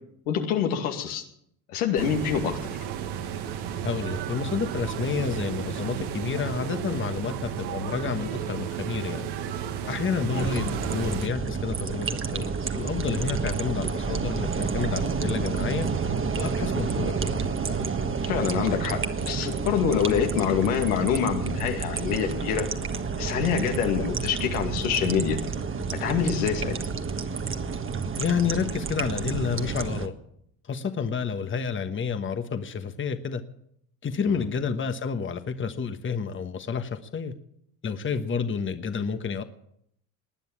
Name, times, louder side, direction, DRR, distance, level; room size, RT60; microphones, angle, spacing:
voice 1, 0.3-1.2 1.7-2.7 10.3-10.4 18.2-22.7 23.2-25.4 26.0-26.7 34.2-34.4, left 8 dB, 85° left, 3 dB, 2.3 m, -26 dB
sound 1, 2.0-11.3, right 9 dB, 65° right, 1.8 m, -33 dB
voice 2, 3.8-9.3 9.9-15.9 16.4-17.4 28.2-30.1 30.7-33.4 34.0-37.3 37.8-39.4, left 6 dB, 30° left, 9 dB, 1.3 m, -30 dB
sound 2, 10.4-30.1, right 5 dB, 30° right, 1.5 m, -30 dB
20.0 x 9.4 x 7.2 m, 0.72 s
supercardioid pair, 85°, 42 cm